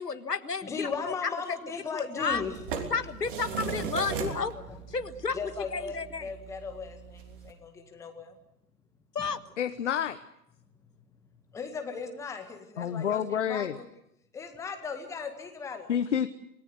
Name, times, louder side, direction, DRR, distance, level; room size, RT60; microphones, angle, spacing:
voice 1, 0.0-0.9 2.0-2.4 2.9-4.5 4.9-5.4 5.7-6.2 9.1-9.4, left 5 dB, 85° left, 12 dB, 1.7 m, -31 dB
voice 2, 0.6-2.6 3.7-3.9 4.1-4.8 5.3-8.4 9.2-9.3 11.5-13.9 14.3-15.9, left 5 dB, 5° left, 5 dB, 1.8 m, -37 dB
sound 1, 2.3-7.5, right 6 dB, 35° right, 3.3 m, -38 dB
voice 3, 9.6-10.2 12.8-13.7 15.9-16.3, left 9 dB, 50° left, 11 dB, 1.1 m, -28 dB
27.5 x 18.5 x 7.9 m, 0.79 s
figure-of-eight pair, 135°, 47 cm